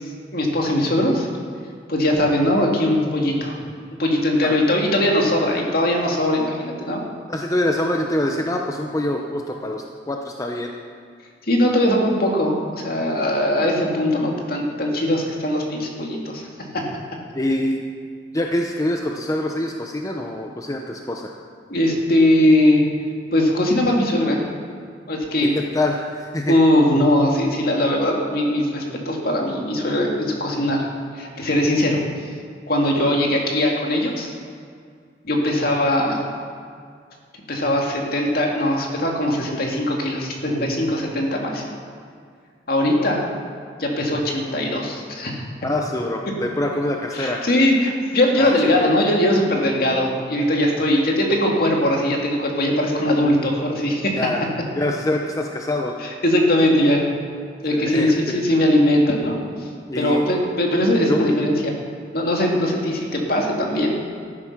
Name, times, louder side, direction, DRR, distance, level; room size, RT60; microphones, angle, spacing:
voice 1, 0.3-1.3 1.9-3.6 4.0-7.0 11.5-16.5 16.7-16.8 21.7-22.8 23.3-24.4 25.1-25.5 26.5-30.9 31.1-32.0 32.7-34.3 35.2-36.2 37.5-41.8 42.7-43.2 43.8-45.4 47.1-54.3 56.0-57.1 57.6-59.4 60.0-61.7 62.1-63.9, left 1 dB, 55° left, 0 dB, 2.2 m, -20 dB
voice 2, 7.3-10.7 17.3-17.8 18.3-21.3 25.4-26.5 45.6-47.5 48.4-48.5 48.8-48.9 54.1-54.4 54.8-56.0 57.7-58.4 59.9-60.3 61.0-61.3, left 1 dB, 20° left, 2 dB, 0.7 m, -25 dB
14.0 x 10.0 x 6.0 m, 2.1 s
head